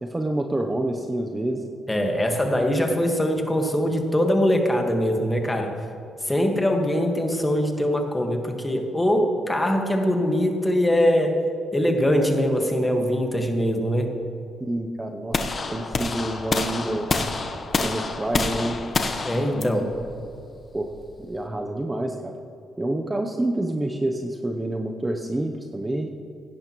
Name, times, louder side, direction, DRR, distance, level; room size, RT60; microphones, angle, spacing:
voice 1, 0.0-1.6 14.6-17.1 17.8-18.8 19.5-20.3 20.7-20.9 21.2-22.4 22.8-26.1, right 1 dB, 15° right, 3 dB, 0.7 m, -28 dB
voice 2, 1.9-5.8 6.2-11.5 11.7-14.1 19.2-19.9, equal, 15° left, 3 dB, 1.6 m, -22 dB
sound 1, 15.3-21.4, left 3 dB, 35° left, 1.0 m, -28 dB
16.0 x 10.5 x 3.1 m, 2.5 s
cardioid pair, 90°, 0 cm